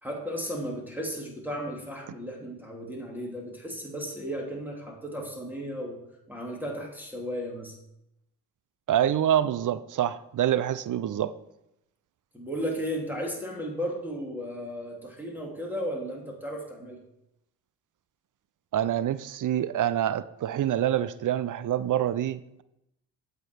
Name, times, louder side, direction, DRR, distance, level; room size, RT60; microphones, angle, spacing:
voice 1, 0.0-6.0 6.3-7.7 12.3-17.0, equal, 5° right, 2.9 m, -35 dB
voice 2, 8.9-11.3 18.7-22.6, right 11 dB, 45° right, 0.6 m, -26 dB
8.2 x 6.7 x 4.6 m
supercardioid pair, 50°, 43 cm